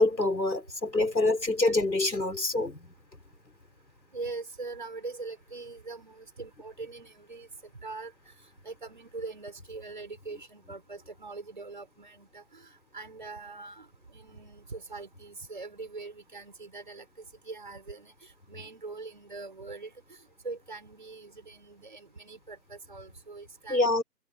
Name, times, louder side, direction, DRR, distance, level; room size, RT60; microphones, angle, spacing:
voice 1, 0.0-2.8 23.7-24.0, left 2 dB, 80° left, 4.9 m, -25 dB
voice 2, 4.1-7.5 7.8-8.1 8.6-19.9 20.4-24.0, right 3 dB, 30° right, 5.8 m, -42 dB
figure-of-eight pair, 175°, 49 cm